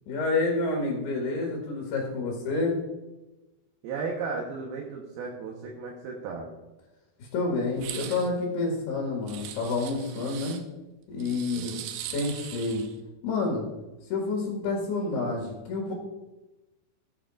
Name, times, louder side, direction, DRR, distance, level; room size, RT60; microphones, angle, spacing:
voice 1, 0.1-2.8 7.2-10.6 11.1-11.7 12.1-12.8 13.2-13.7 14.1-15.9, left 3 dB, 80° left, -1 dB, 3.9 m, -28 dB
voice 2, 3.8-6.5 11.5-11.8, right 4 dB, 75° right, -1 dB, 3.0 m, -35 dB
sound 1, 7.7-8.3 9.3-10.6 11.2-12.9, right 10 dB, 90° right, 3.0 m, -40 dB
15.0 x 8.9 x 2.6 m, 1.0 s
omnidirectional pair, 4.7 m